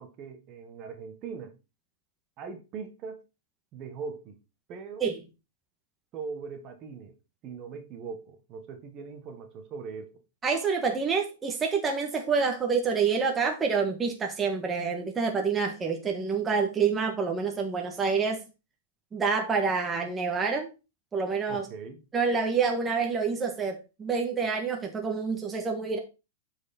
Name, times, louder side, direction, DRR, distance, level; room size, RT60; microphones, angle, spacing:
voice 1, 0.0-1.6 2.4-3.2 3.7-4.4 4.7-5.0 6.1-7.1 7.4-10.1 21.5-22.0, right 5 dB, 30° right, 1.4 m, -40 dB
voice 2, 10.4-18.4 19.1-20.7 21.1-21.7 22.1-26.0, right 5 dB, 15° right, 1.4 m, -27 dB
8.7 x 4.8 x 4.3 m
supercardioid pair, 150°, 0 cm